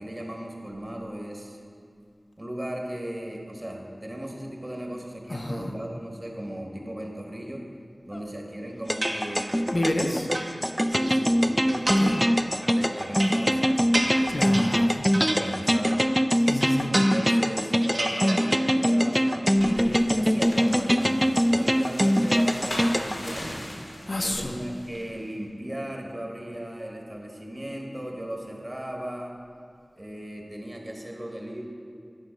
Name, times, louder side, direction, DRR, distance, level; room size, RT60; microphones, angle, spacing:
voice 1, 0.0-1.6 2.4-7.7 8.1-10.2 10.9-14.3 15.1-16.0 16.9-23.7 24.2-29.3 30.0-31.6, right 1 dB, 30° right, 1 dB, 1.3 m, -36 dB
voice 2, 5.3-5.7 8.1-8.2 9.7-10.3 12.0-12.1 14.3-15.0 16.5-16.9 24.1-24.6, left 1 dB, 55° left, 2 dB, 0.7 m, -29 dB
sound 1, 8.9-23.2, equal, 5° left, 0.3 m, -23 dB
sound 2, 9.0-9.7 10.1-11.2 11.7-12.3 12.6-16.1 16.5-17.5 17.8-18.9 19.2-19.8, right 1 dB, 50° right, 1.0 m, -33 dB
sound 3, 19.5-25.1, left 1 dB, 85° left, 1.6 m, -40 dB
9.8 x 5.6 x 5.2 m, 2.3 s
wide cardioid pair, 55°, 0 cm